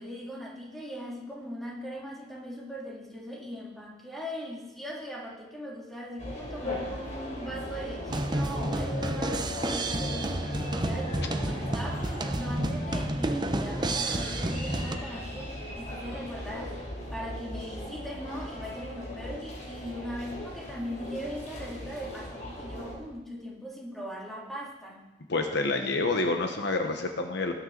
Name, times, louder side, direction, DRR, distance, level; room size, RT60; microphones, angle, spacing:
voice 1, 0.0-25.1, equal, ahead, -4 dB, 2.6 m, -40 dB
sound 1, 6.2-23.0, left 1 dB, 40° left, 3.7 m, -38 dB
sound 2, 8.1-15.0, right 1 dB, 25° right, 0.7 m, -30 dB
voice 2, 25.3-27.5, left 3 dB, 65° left, 5 dB, 1.1 m, -28 dB
19.5 x 8.9 x 3.9 m, 1.1 s
head